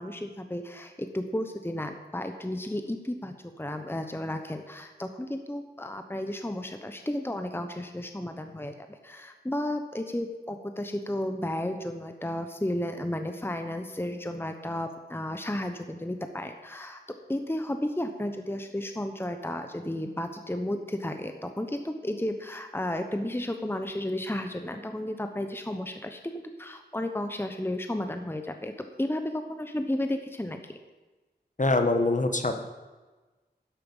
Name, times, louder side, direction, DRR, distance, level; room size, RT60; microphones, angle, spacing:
voice 1, 0.0-17.0 17.3-30.8, left 1 dB, 10° left, 6 dB, 1.0 m, -33 dB
voice 2, 31.6-32.6, left 2 dB, 45° left, 6 dB, 1.3 m, -24 dB
12.0 x 10.5 x 5.5 m, 1.2 s
wide cardioid pair, 60°, 18 cm